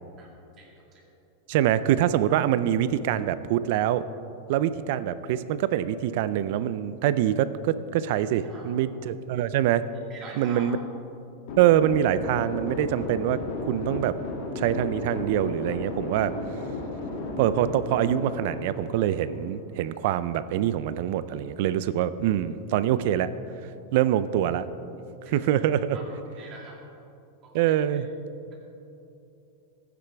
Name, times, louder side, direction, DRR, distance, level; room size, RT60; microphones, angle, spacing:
voice 1, 0.6-1.0 8.4-8.7 10.1-10.7 25.2-25.5 25.9-26.0 26.4-26.8 27.4-27.8 28.5-28.6, right 3 dB, 30° right, -2 dB, 2.4 m, -45 dB
voice 2, 1.5-4.0 4.5-9.9 10.4-10.8 11.6-13.4 13.7-14.2 14.6-16.4 17.4-23.3 23.9-24.7 25.3-26.0 27.5-28.1, right 11 dB, 55° right, 15 dB, 0.4 m, -24 dB
sound 1, 11.5-19.8, left 2 dB, 60° left, 2.3 m, -34 dB
15.0 x 9.8 x 3.4 m, 2.8 s
supercardioid pair, 155°, 0 cm